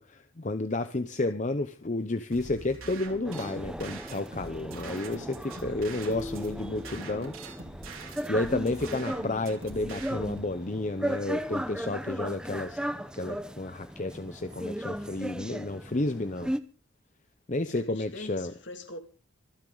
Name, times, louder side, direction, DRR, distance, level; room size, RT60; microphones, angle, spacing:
voice 1, 0.0-7.4 8.3-12.9 13.1-16.5 17.5-18.5, left 2 dB, 35° left, 0.7 m, -31 dB
sound 1, 2.3-10.4, right 3 dB, 80° right, 3.8 m, -44 dB
sound 2, 3.3-16.6, equal, 5° right, 0.7 m, -37 dB
voice 2, 5.6-6.1 17.7-19.0, left 2 dB, 60° left, 2.4 m, -43 dB
26.5 x 9.5 x 3.9 m
head